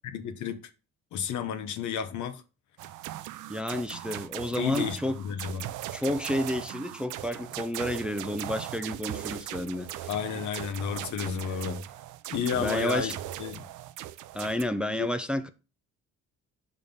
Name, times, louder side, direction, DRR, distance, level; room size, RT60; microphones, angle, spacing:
voice 1, 0.1-0.6 1.1-2.4 4.5-5.7 10.1-11.8 12.3-13.6 15.0-15.1, left 7 dB, 70° left, 0.8 m, -32 dB
sound 1, 2.8-14.6, right 13 dB, 85° right, 0.5 m, -39 dB
voice 2, 3.5-5.2 5.9-10.1 12.5-13.1 14.3-15.5, left 1 dB, 5° right, 0.5 m, -31 dB
5.5 x 3.6 x 5.2 m
cardioid pair, 90°, 30 cm